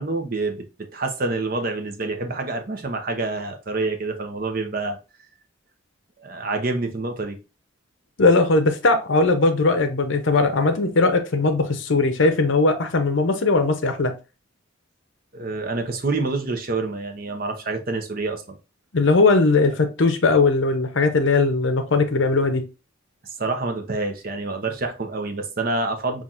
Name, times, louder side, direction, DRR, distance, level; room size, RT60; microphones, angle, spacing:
voice 1, 0.0-5.0 6.2-7.4 15.3-18.6 23.4-26.2, right 3 dB, 45° right, 0.7 m, -27 dB
voice 2, 8.2-14.1 18.9-22.6, left 3 dB, 60° left, 0.6 m, -19 dB
5.6 x 2.5 x 2.4 m
head